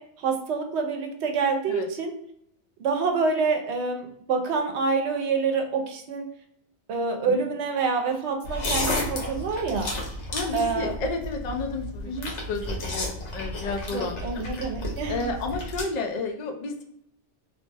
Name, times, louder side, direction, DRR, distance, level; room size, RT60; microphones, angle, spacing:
voice 1, 0.0-2.1 2.8-6.2 6.9-9.9 10.5-10.9 12.1-12.3 13.9-15.2, right 4 dB, 75° right, 5 dB, 0.8 m, -27 dB
sound 1, 8.4-15.8, left 2 dB, 85° left, 1.1 m, -32 dB
voice 2, 10.3-12.2 12.5-14.4 15.1-16.8, left 3 dB, 55° left, 3 dB, 0.5 m, -31 dB
2.6 x 2.0 x 3.3 m, 0.73 s
omnidirectional pair, 1.2 m